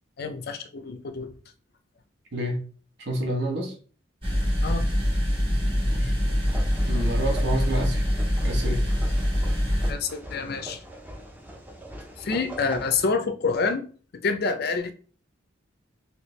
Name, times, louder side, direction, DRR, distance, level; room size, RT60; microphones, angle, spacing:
voice 1, 0.2-1.3 4.6-4.8 9.9-10.8 12.2-13.9 14.1-14.9, left 4 dB, 55° left, 8 dB, 0.4 m, -27 dB
voice 2, 2.3-2.6 3.0-3.7 5.9-6.4 6.8-8.0 8.4-8.8, right 1 dB, 60° right, 1 dB, 1.0 m, -29 dB
sound 1, 4.2-9.9, equal, 25° right, 1.3 m, -24 dB
sound 2, 6.4-13.0, equal, 10° right, 0.5 m, -42 dB
3.2 x 2.9 x 3.1 m, 0.40 s
head